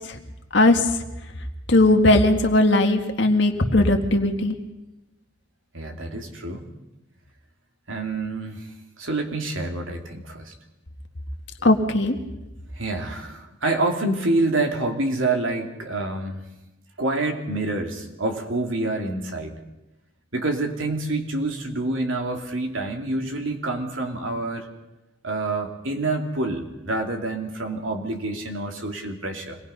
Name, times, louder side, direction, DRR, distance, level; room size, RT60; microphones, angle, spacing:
voice 1, 0.5-0.9 1.7-4.5 11.6-12.2, left 2 dB, 60° left, 4 dB, 1.9 m, -18 dB
voice 2, 5.7-6.7 7.9-8.7 9.0-10.5 12.8-16.4 17.0-19.5 20.3-24.7 25.2-29.6, right 2 dB, 70° right, 3 dB, 2.6 m, -27 dB
26.0 x 19.5 x 5.6 m, 1.0 s
head